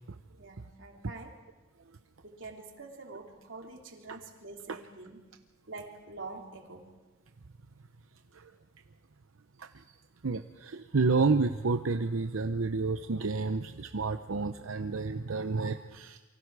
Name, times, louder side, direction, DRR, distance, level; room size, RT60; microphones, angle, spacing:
voice 1, 0.4-1.4 2.2-5.3 5.7-6.9, right 3 dB, 65° right, 1 dB, 3.1 m, -46 dB
voice 2, 10.2-16.2, right 4 dB, 90° right, 7 dB, 0.8 m, -30 dB
28.0 x 24.0 x 4.8 m, 1.2 s
head